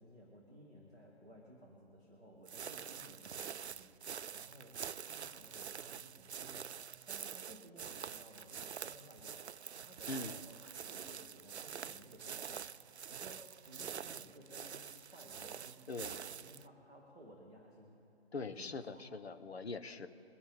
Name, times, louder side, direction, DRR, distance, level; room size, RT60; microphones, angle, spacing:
voice 1, 0.0-6.8 7.1-12.8 13.1-18.0 18.4-19.1, right 1 dB, 5° left, -6 dB, 0.6 m, -57 dB
sound 1, 2.5-16.7, right 7 dB, 80° right, 0.5 m, -46 dB
voice 2, 10.1-10.4 15.9-16.1 18.3-20.1, left 3 dB, 70° left, 11 dB, 0.9 m, -42 dB
21.5 x 9.5 x 3.7 m, 2.9 s
figure-of-eight pair, 145°, 33 cm